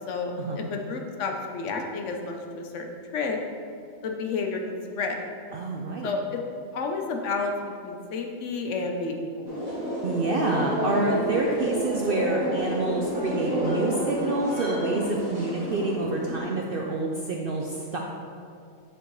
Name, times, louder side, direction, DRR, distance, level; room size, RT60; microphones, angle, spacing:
voice 1, 0.1-3.4 4.0-5.3 6.0-6.4 6.7-7.5 7.8-9.5, left 4 dB, 70° left, 3 dB, 0.9 m, -31 dB
voice 2, 5.5-6.1 10.0-18.0, right 2 dB, 65° right, 0 dB, 0.5 m, -28 dB
sound 1, 9.5-16.4, equal, 85° right, 2.2 m, -29 dB
7.9 x 4.5 x 3.1 m, 2.3 s
omnidirectional pair, 1.4 m